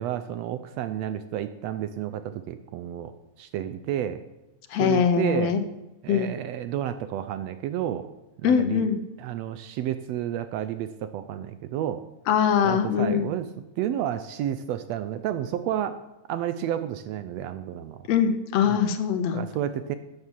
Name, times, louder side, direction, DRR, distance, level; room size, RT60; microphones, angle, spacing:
voice 1, 0.0-3.1 3.4-4.2 4.8-5.6 6.0-8.1 8.4-8.8 9.2-12.0 12.6-13.5 13.8-16.0 16.3-18.0 18.6-18.8 19.3-20.0, right 11 dB, 75° right, 11 dB, 1.6 m, -31 dB
voice 2, 4.7-5.6 6.1-6.3 8.4-9.0 12.3-13.3 18.1-19.5, left 8 dB, 70° left, 9 dB, 1.9 m, -22 dB
12.5 x 8.1 x 7.2 m, 0.98 s
omnidirectional pair, 3.4 m